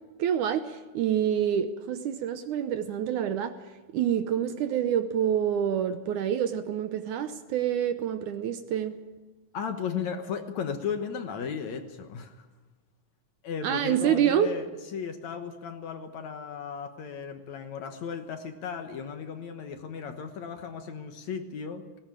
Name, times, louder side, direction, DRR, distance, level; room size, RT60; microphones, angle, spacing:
voice 1, 0.2-3.6 3.9-9.0 13.6-14.5, right 9 dB, 70° right, 9 dB, 2.1 m, -27 dB
voice 2, 9.5-12.5 13.4-22.0, left 6 dB, 60° left, 6 dB, 2.3 m, -35 dB
19.0 x 18.0 x 9.0 m, 1.2 s
omnidirectional pair, 4.1 m